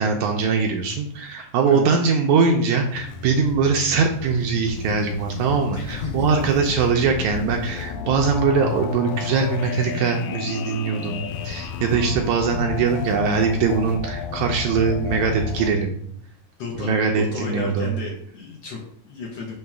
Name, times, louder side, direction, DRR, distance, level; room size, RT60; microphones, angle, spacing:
voice 1, 0.0-15.9 16.8-17.9, right 5 dB, 75° right, 2 dB, 1.8 m, -22 dB
sound 1, 2.8-15.7, left 6 dB, 80° left, 2.2 m, -32 dB
voice 2, 5.7-6.3 16.6-19.6, left 4 dB, 65° left, -2 dB, 1.7 m, -33 dB
6.5 x 3.0 x 5.9 m, 0.65 s
omnidirectional pair, 3.8 m